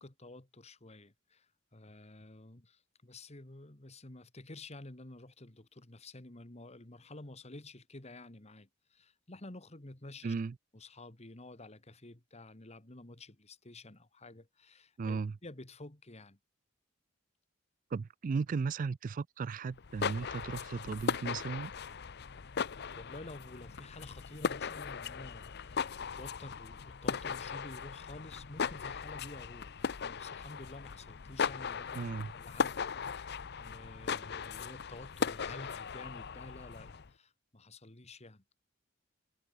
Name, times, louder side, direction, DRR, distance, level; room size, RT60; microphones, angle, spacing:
voice 1, 0.0-10.3 10.7-16.4 22.9-32.1 32.3-38.4, left 2 dB, 35° left, 2.0 m, -51 dB
voice 2, 10.2-10.5 15.0-15.4 17.9-21.7 32.0-32.3, right 5 dB, 45° right, 0.3 m, -36 dB
sound 1, 19.7-37.1, left 6 dB, 55° left, 0.7 m, -38 dB
head